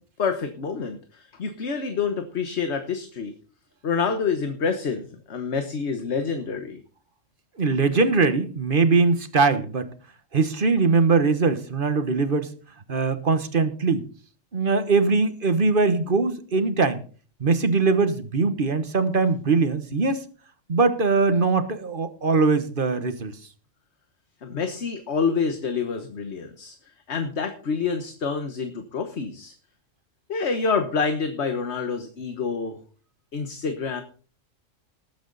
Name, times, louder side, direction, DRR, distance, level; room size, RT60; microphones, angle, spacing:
voice 1, 0.2-3.3 3.8-6.8 24.4-26.8 27.1-29.5 30.3-32.8 33.3-34.0, left 5 dB, 60° left, 7 dB, 1.5 m, -27 dB
voice 2, 7.6-9.9 10.3-12.5 12.9-14.1 14.5-17.0 17.4-20.2 20.7-23.3, right 4 dB, 45° right, 11 dB, 1.3 m, -21 dB
19.5 x 8.6 x 4.0 m, 0.40 s
omnidirectional pair, 1.3 m